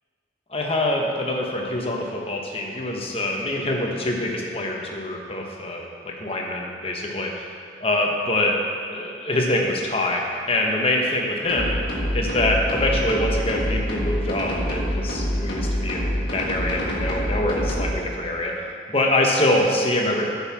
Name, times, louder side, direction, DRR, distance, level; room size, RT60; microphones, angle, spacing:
voice 1, 0.5-7.5 7.8-8.6 8.9-11.7 12.1-18.5 18.9-20.2, left 1 dB, 30° left, 0 dB, 1.0 m, -24 dB
sound 1, 11.5-17.9, equal, 60° left, 1.6 m, -26 dB
8.9 x 5.5 x 6.0 m, 2.3 s
head